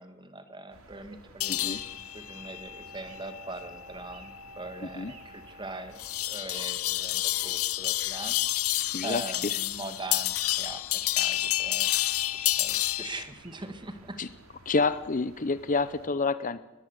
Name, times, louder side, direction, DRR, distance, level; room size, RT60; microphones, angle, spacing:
voice 1, 0.0-6.0 6.3-8.4 9.0-11.9 12.3-14.2, right 2 dB, 20° right, 9 dB, 2.2 m, -41 dB
sound 1, 0.7-16.1, right 3 dB, 70° right, 2.8 m, -54 dB
sound 2, 1.4-13.2, left 15 dB, 70° left, 0.8 m, -30 dB
voice 2, 1.5-1.8 4.8-5.1 8.9-9.6 14.2-14.3 14.7-16.6, left 3 dB, 40° left, 15 dB, 0.7 m, -28 dB
22.0 x 21.0 x 8.3 m, 1.1 s
head